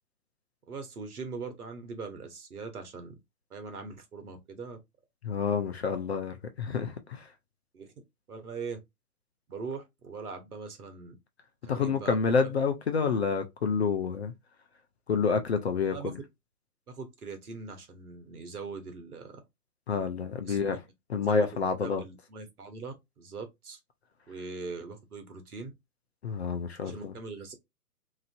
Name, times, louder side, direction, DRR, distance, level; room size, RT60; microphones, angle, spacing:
voice 1, 0.7-3.2 3.5-4.8 7.7-7.9 8.3-8.8 9.5-11.2 11.6-12.5 15.9-16.1 16.9-19.4 20.4-20.8 21.2-23.8 24.3-25.7 26.8-27.5, right 4 dB, 65° right, 1.2 m, -41 dB
voice 2, 5.2-7.3 11.7-14.3 15.1-16.2 19.9-20.8 21.1-22.0 26.2-27.1, left 5 dB, 45° left, 0.5 m, -28 dB
2.9 x 2.6 x 2.5 m
figure-of-eight pair, 135°, 47 cm